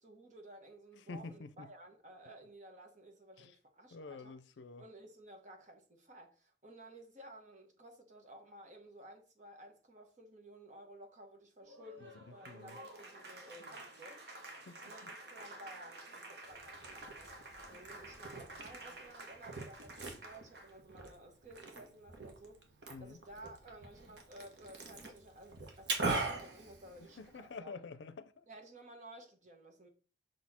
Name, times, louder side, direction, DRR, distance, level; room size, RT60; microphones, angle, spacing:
voice 1, 0.0-4.3 4.8-14.2 14.8-22.6 23.0-27.8 28.5-29.9, right 1 dB, 45° right, 1.3 m, -55 dB
voice 2, 1.0-1.7 3.4-3.6 3.9-4.9 12.0-12.8 14.7-15.1 22.9-23.2 27.2-28.5, left 4 dB, 85° left, 0.5 m, -49 dB
Applause, 11.6-20.8, right 2 dB, 65° right, 1.2 m, -51 dB
Liquid, 16.5-27.5, right 3 dB, 80° right, 1.5 m, -43 dB
6.4 x 4.2 x 4.2 m
head